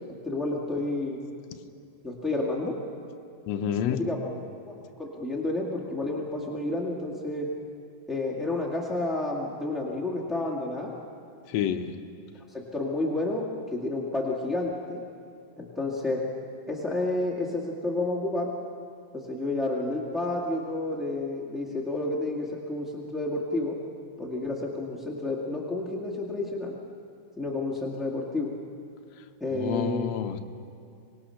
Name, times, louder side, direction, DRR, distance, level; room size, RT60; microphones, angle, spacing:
voice 1, 0.2-1.2 2.0-2.7 4.0-4.2 4.6-4.7 5.0-7.5 8.1-10.9 12.7-15.0 15.6-16.2 16.7-18.5 19.1-23.7 24.2-26.8 27.4-28.5 29.4-30.1, left 2 dB, ahead, -4 dB, 0.8 m, -30 dB
voice 2, 3.5-4.0 11.5-11.9 29.5-30.4, left 9 dB, 70° left, 6 dB, 1.7 m, -29 dB
25.5 x 19.5 x 5.8 m, 2.4 s
omnidirectional pair, 4.1 m